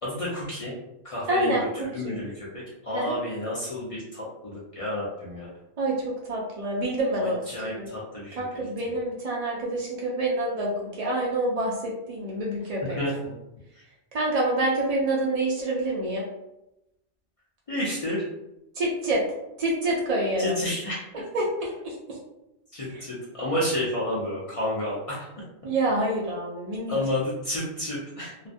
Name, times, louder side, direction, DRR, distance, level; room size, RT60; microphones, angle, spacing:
voice 1, 0.0-0.7 1.0-5.5 7.2-8.4 8.8-9.0 12.9-13.3 17.7-18.3 20.4-21.2 22.7-25.3 26.9-28.3, left 1 dB, 45° left, -7 dB, 0.5 m, -31 dB
voice 2, 1.3-1.6 2.0-2.2 2.9-3.2 5.8-7.4 7.8-7.9 8.4-13.0 14.1-16.3 18.8-19.2 19.6-20.6 21.3-22.2 25.6-27.0, right 1 dB, 65° right, -4 dB, 0.3 m, -27 dB
2.3 x 2.1 x 2.5 m, 0.90 s
omnidirectional pair, 1.2 m